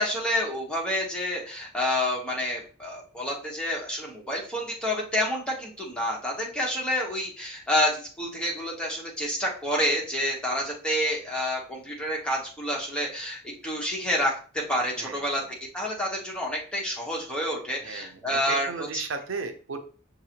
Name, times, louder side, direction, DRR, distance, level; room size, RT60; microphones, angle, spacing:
voice 1, 0.0-15.4 15.7-19.0, equal, 5° left, -3 dB, 1.1 m, -28 dB
voice 2, 15.0-15.5 17.8-19.8, right 4 dB, 80° right, 6 dB, 0.6 m, -36 dB
6.4 x 2.6 x 2.9 m, 0.40 s
head